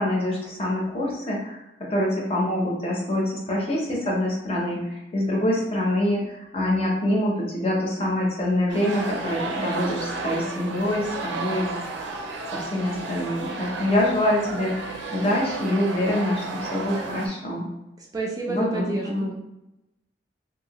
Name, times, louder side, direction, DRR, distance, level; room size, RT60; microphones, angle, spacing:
voice 1, 0.0-11.7 12.5-17.7 18.5-19.3, left 1 dB, 35° left, -2 dB, 0.7 m, -25 dB
sound 1, 8.7-17.3, right 3 dB, 80° right, 0.5 m, -32 dB
voice 2, 18.0-19.4, right 3 dB, 20° right, -2 dB, 0.3 m, -30 dB
2.7 x 2.6 x 2.9 m, 0.94 s
head